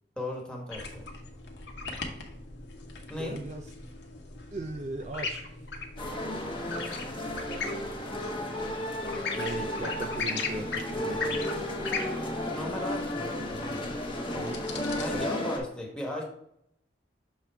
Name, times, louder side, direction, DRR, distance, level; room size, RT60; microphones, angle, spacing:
voice 1, 0.2-1.1 3.1-3.4 12.5-14.0 15.0-16.2, left 1 dB, 5° left, -1 dB, 1.1 m, -37 dB
sound 1, 0.7-15.2, left 4 dB, 75° left, 1.0 m, -39 dB
voice 2, 3.2-3.7 4.5-5.5 9.4-11.5 14.3-14.6 15.1-15.5, right 2 dB, 40° right, 4 dB, 0.4 m, -38 dB
sound 2, 6.0-15.6, left 1 dB, 30° left, 0.9 m, -33 dB
6.5 x 3.5 x 4.5 m, 0.74 s
head